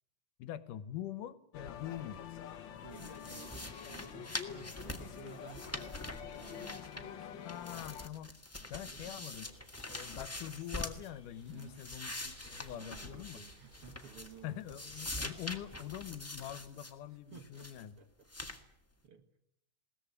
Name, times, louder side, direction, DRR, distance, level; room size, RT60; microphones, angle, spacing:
voice 1, 0.4-2.2 7.4-8.3 8.7-9.5 9.9-13.4 14.4-17.9, left 12 dB, 80° left, 15 dB, 2.6 m, -44 dB
sound 1, 1.5-8.1, left 9 dB, 60° left, 1.2 m, -47 dB
voice 2, 2.7-7.9 8.6-9.3 11.5-11.8 12.7-14.6 17.3-18.3 18.6-18.8 19.0-19.3, right 6 dB, 50° right, 7 dB, 2.4 m, -55 dB
sound 2, 2.9-7.2 7.5-11.1 11.5-14.4 14.7-16.9 17.3-17.8 18.3-18.6, left 1 dB, 15° left, 0.5 m, -44 dB
sound 3, 9.3-15.7, left 2 dB, 15° right, 5.2 m, -61 dB
21.0 x 18.5 x 9.8 m, 0.75 s
omnidirectional pair, 3.7 m